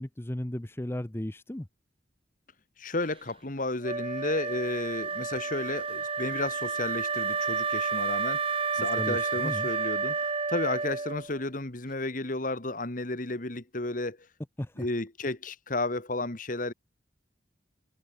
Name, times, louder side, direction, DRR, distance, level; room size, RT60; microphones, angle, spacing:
voice 1, 0.0-1.7 8.8-9.7 14.6-14.9, left 1 dB, 15° left, 0.7 m, -35 dB
voice 2, 2.8-14.2 14.8-16.7, left 2 dB, 50° left, 2.0 m, -33 dB
Wind instrument woodwind instrument, 3.8-11.4, right 5 dB, 30° right, 1.0 m, -30 dB
head